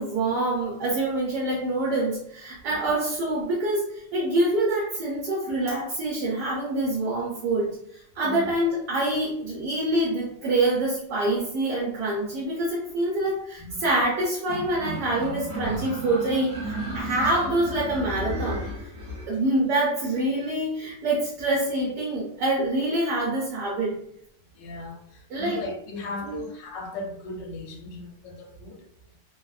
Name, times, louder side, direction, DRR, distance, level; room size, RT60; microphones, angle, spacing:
voice 1, 0.0-7.7 8.2-18.6 19.3-24.0 25.3-25.6 26.2-26.4, right 2 dB, 70° right, -5 dB, 1.3 m, -26 dB
voice 2, 8.2-8.5 13.6-13.9 24.6-25.0 25.4-28.8, left 2 dB, 85° left, 1 dB, 1.3 m, -37 dB
sound 1, 14.5-19.3, right 1 dB, 10° right, 0.9 m, -33 dB
3.1 x 2.0 x 2.3 m, 0.70 s
omnidirectional pair, 1.9 m